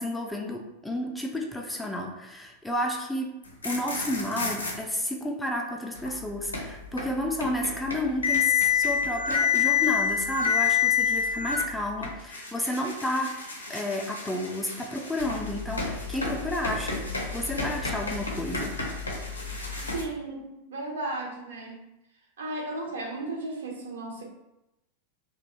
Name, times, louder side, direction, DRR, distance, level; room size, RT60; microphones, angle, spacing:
voice 1, 0.0-13.4 13.7-18.8, left 1 dB, 5° left, 1 dB, 0.3 m, -31 dB
sound 1, 3.5-4.7 5.9-20.0, left 6 dB, 80° left, 0.5 m, -29 dB
voice 2, 19.9-21.9 22.4-24.2, right 2 dB, 65° right, 0 dB, 0.5 m, -35 dB
2.6 x 2.1 x 2.6 m, 0.92 s
figure-of-eight pair, 90°, 0 cm